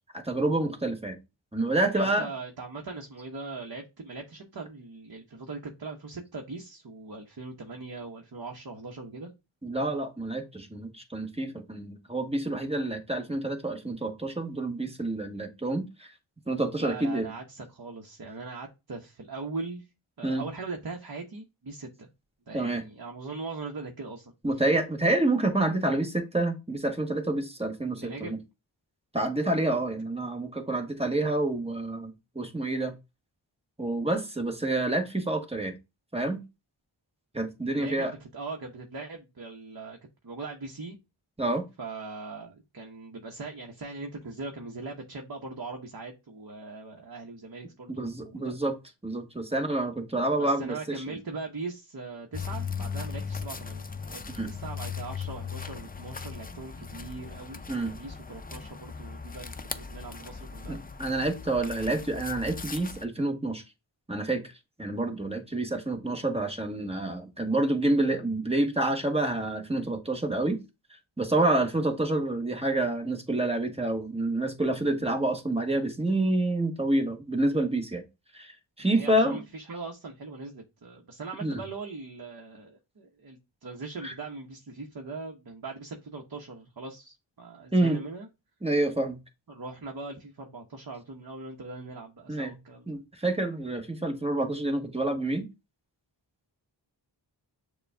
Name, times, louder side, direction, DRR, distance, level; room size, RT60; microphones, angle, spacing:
voice 1, 0.1-1.2 1.5-2.3 9.6-16.1 16.5-17.3 20.2-20.5 22.5-22.8 24.4-28.4 29.1-32.9 33.8-35.7 36.1-36.4 37.3-38.1 41.4-41.6 48.0-48.7 49.0-51.0 54.4-54.5 57.7-57.9 60.7-63.6 64.1-64.5 64.8-70.6 71.2-78.0 78.3-79.4 81.4-81.6 84.0-84.1 87.7-88.0 88.6-89.2 92.3-92.5 92.9-95.5, right 2 dB, 10° right, 5 dB, 1.2 m, -28 dB
voice 2, 1.9-9.3 16.7-19.9 20.2-22.1 22.5-24.3 28.0-28.4 37.7-40.0 40.2-41.0 41.8-48.5 50.2-60.8 78.8-88.3 89.5-93.0, right 3 dB, 50° right, 2 dB, 1.0 m, -40 dB
sound 1, 52.3-63.0, left 6 dB, 20° left, 0.5 m, -38 dB
6.6 x 2.4 x 3.3 m, 0.25 s
cardioid pair, 40°, 47 cm